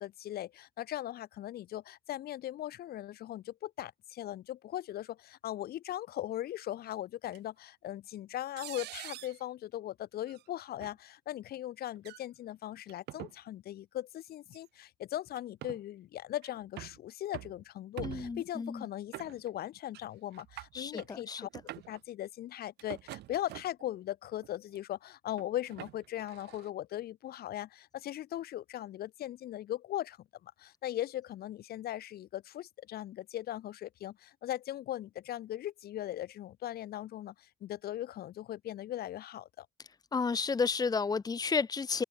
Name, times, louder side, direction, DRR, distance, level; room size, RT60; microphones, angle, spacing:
voice 1, 0.0-21.5 21.9-30.2 30.4-39.7, left 13 dB, 65° left, 3.6 m, -39 dB
sound 1, 7.3-7.4 8.6-9.4 10.3-10.4 10.8-10.9 12.0-12.2 12.9-13.3 14.5-14.6 15.4-15.8 16.4-17.0 17.3-17.6 18.0-18.5 19.1-19.7 19.9-20.1 20.3-21.1 21.5-22.0 22.8-23.8 24.4-24.8 25.4-26.7, right 16 dB, 80° right, 2.8 m, -45 dB
voice 2, 18.0-18.8 20.7-21.4 40.1-42.0, left 5 dB, 20° left, 1.1 m, -32 dB
cardioid pair, 110°, 17 cm